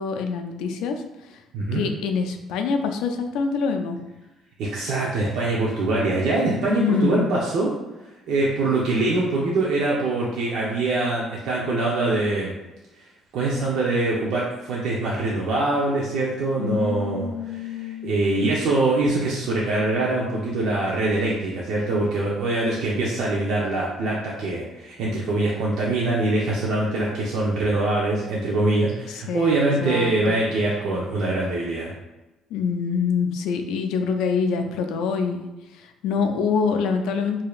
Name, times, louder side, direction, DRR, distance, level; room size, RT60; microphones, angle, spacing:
voice 1, 0.0-1.4 1.7-4.0 6.7-7.3 16.6-18.2 29.1-30.4 32.5-37.4, left 5 dB, 85° left, 6 dB, 0.4 m, -26 dB
voice 2, 4.6-7.7 8.3-12.6 13.0-13.1 13.3-31.9, right 2 dB, 75° right, -5 dB, 0.7 m, -23 dB
4.9 x 2.8 x 2.4 m, 1.1 s
cardioid pair, 90°, 0 cm